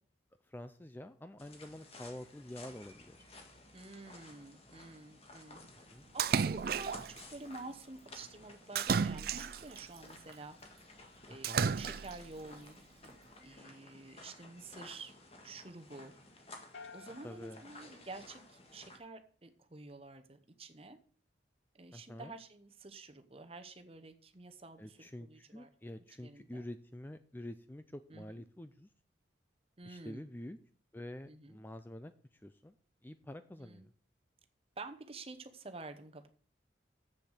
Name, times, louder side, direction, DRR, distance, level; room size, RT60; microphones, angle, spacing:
voice 1, 0.5-3.2 5.9-6.0 11.3-11.7 17.2-17.6 21.9-22.3 24.8-28.9 29.8-30.6 30.9-32.1 32.4-32.7 33.0-33.9, left 1 dB, 10° left, 10 dB, 0.4 m, -47 dB
sound 1, 1.4-19.0, left 2 dB, 35° left, 1.7 m, -55 dB
voice 2, 3.7-5.9 6.1-10.6 11.3-13.1 13.4-15.1 15.4-16.1 16.9-21.0 21.7-25.7 26.2-26.6 28.1-28.4 29.8-30.3 31.2-31.6 33.6-33.9 34.8-36.3, right 3 dB, 30° right, 8 dB, 0.9 m, -50 dB
Splash splatter, 6.2-7.2 8.8-9.8 11.4-12.3, right 6 dB, 55° right, 0.4 m, -32 dB
sound 2, 16.7-19.0, left 4 dB, 65° left, 0.9 m, -55 dB
7.9 x 6.9 x 6.4 m, 0.44 s
head